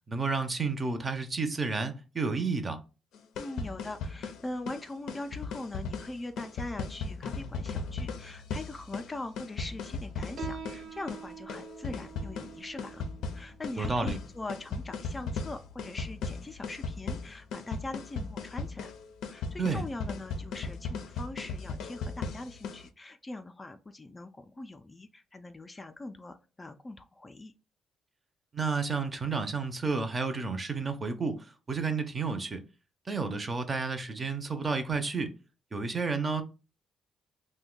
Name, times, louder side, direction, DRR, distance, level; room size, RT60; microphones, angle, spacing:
voice 1, 0.1-2.8 13.8-14.2 19.6-19.8 28.5-32.6 33.1-35.3 35.7-36.4, right 4 dB, 30° right, 0.6 m, -31 dB
sound 1, 3.1-22.9, left 4 dB, 85° left, 0.4 m, -37 dB
voice 2, 3.4-13.1 13.3-18.9 19.3-27.5, left 2 dB, 25° left, 0.3 m, -42 dB
Piano, 10.4-17.4, right 6 dB, 70° right, 0.7 m, -47 dB
2.6 x 2.1 x 3.7 m
cardioid pair, 90°, 0 cm